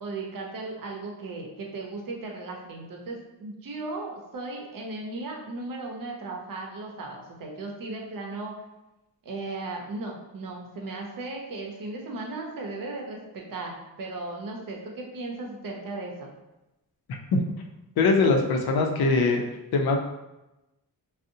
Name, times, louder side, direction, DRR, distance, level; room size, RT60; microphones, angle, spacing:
voice 1, 0.0-8.5 9.2-16.3, right 2 dB, 65° right, 0 dB, 0.6 m, -36 dB
voice 2, 18.0-19.4 19.7-20.0, left 3 dB, 85° left, 2 dB, 0.5 m, -21 dB
2.6 x 2.0 x 2.6 m, 0.97 s
wide cardioid pair, 95°, 36 cm